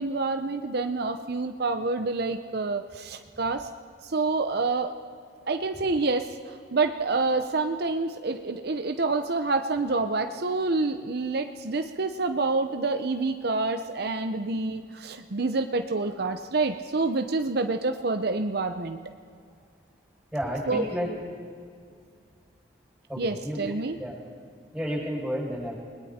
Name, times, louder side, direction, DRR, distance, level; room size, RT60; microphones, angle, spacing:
voice 1, 0.0-3.7 4.0-4.9 5.5-19.0 20.7-20.9 23.2-24.0, right 3 dB, 65° right, 7 dB, 0.8 m, -27 dB
voice 2, 20.3-21.1 23.1-23.6 24.0-24.1 24.7-25.8, equal, 5° right, -3 dB, 7.2 m, -31 dB
29.5 x 21.0 x 4.4 m, 2.2 s
head